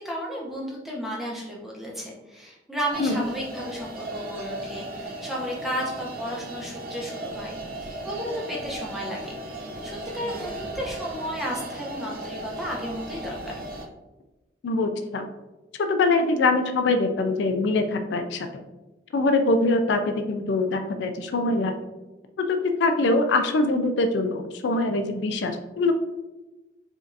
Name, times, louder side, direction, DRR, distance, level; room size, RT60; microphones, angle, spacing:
voice 1, 0.0-9.3 9.8-13.6, equal, ahead, -4 dB, 0.7 m, -33 dB
sound 1, 2.9-13.9, right 1 dB, 50° right, 0.5 m, -36 dB
voice 2, 14.6-15.3 15.8-18.5 19.1-21.7 22.4-25.9, left 2 dB, 70° left, 7 dB, 0.3 m, -23 dB
4.9 x 2.5 x 2.6 m, 1.1 s
head